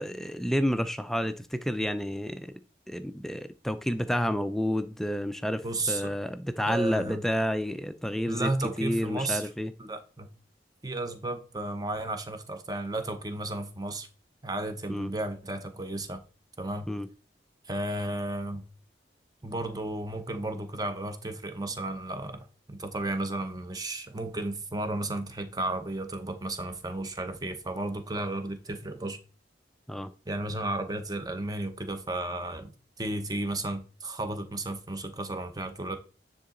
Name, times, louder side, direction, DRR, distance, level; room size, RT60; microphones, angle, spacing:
voice 1, 0.0-2.5 2.9-8.5 8.8-9.7 14.9-15.1 16.9-17.1 29.9-30.1, equal, ahead, 0.4 m, -30 dB
voice 2, 5.6-6.1 6.7-7.2 8.3-9.5 9.8-10.3 10.8-14.1 14.4-16.2 16.6-16.9 17.6-18.7 19.4-29.2 30.3-36.0, right 2 dB, 20° right, 0.9 m, -33 dB
9.7 x 3.9 x 3.8 m
head